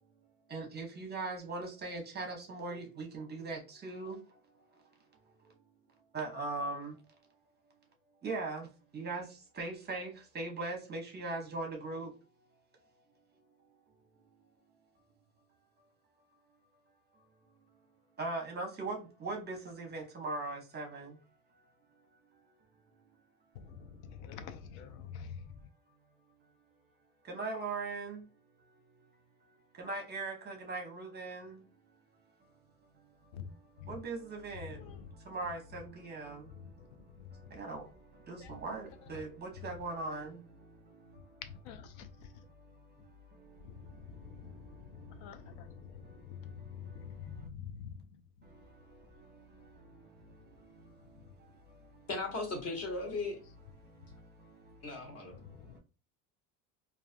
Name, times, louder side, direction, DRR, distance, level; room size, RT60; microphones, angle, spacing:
voice 1, 0.5-4.4 4.7-4.8 5.3-5.5 6.1-7.0 8.2-12.1 18.2-21.3 23.7-23.8 27.2-28.3 28.6-29.1 29.4-31.7 32.1-32.6 32.8-41.4 41.9-47.5 48.4-52.1 53.8-55.8, right 3 dB, 25° right, 0.8 m, -42 dB
voice 2, 23.6-25.4 33.3-33.5 34.8-35.0 38.4-38.5 41.7-42.1 44.4-44.5 45.0-45.7 46.7-47.9 55.7-55.8, left 7 dB, 75° left, 0.5 m, -46 dB
voice 3, 52.1-53.4 54.8-55.3, left 3 dB, 40° left, 1.1 m, -37 dB
2.4 x 2.3 x 2.4 m
cardioid pair, 115°, 39 cm